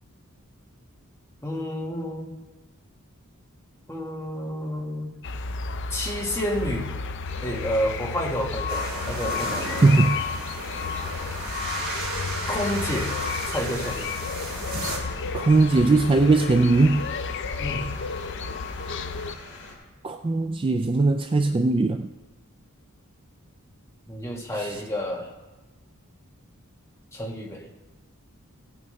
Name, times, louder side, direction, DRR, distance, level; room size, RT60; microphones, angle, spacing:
voice 1, 1.4-2.4 3.9-5.1 5.9-6.9 7.4-9.8 12.5-13.1 13.5-14.1 17.6-17.9 24.1-25.3 27.1-27.6, equal, 15° left, -1 dB, 1.5 m, -30 dB
sound 1, 5.2-19.4, left 4 dB, 55° left, 0.6 m, -33 dB
sound 2, 7.3-19.7, left 6 dB, 80° left, 3.1 m, -37 dB
sound 3, 8.7-15.0, right 2 dB, 45° right, 2.5 m, -34 dB
voice 2, 9.8-10.2 15.3-17.1 20.0-22.1, right 3 dB, 25° right, 7 dB, 0.3 m, -19 dB
17.0 x 8.9 x 3.2 m, 1.2 s
head